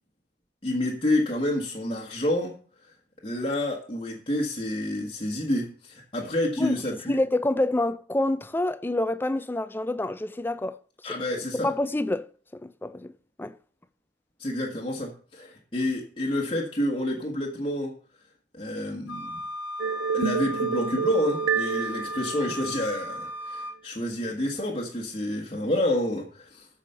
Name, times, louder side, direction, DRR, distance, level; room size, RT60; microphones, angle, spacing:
voice 1, 0.6-2.6 3.2-7.2 11.0-11.7 14.4-17.9 18.5-19.4 20.1-26.7, left 1 dB, 25° left, 1.5 m, -28 dB
voice 2, 7.1-10.8 11.1-13.1 13.4-13.5, left 1 dB, 10° left, 0.4 m, -28 dB
Wind instrument woodwind instrument, 19.1-23.8, left 1 dB, 85° left, 0.9 m, -36 dB
sound 1, 19.8-23.1, right 6 dB, 70° right, 0.4 m, -29 dB
13.5 x 5.0 x 5.6 m
head